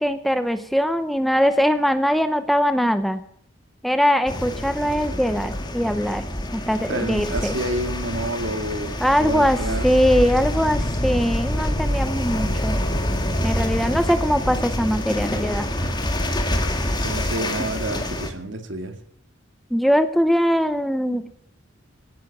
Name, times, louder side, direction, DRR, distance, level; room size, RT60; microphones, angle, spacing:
voice 1, 0.0-3.2 3.8-6.2 6.5-7.5 9.0-12.8 13.4-15.7 19.7-21.3, equal, ahead, 10 dB, 0.7 m, -21 dB
sound 1, 4.3-18.3, left 1 dB, 20° left, 2.1 m, -26 dB
voice 2, 6.9-9.9 17.0-19.0, right 1 dB, 65° right, 7 dB, 2.2 m, -29 dB
17.0 x 10.0 x 7.3 m, 0.69 s
head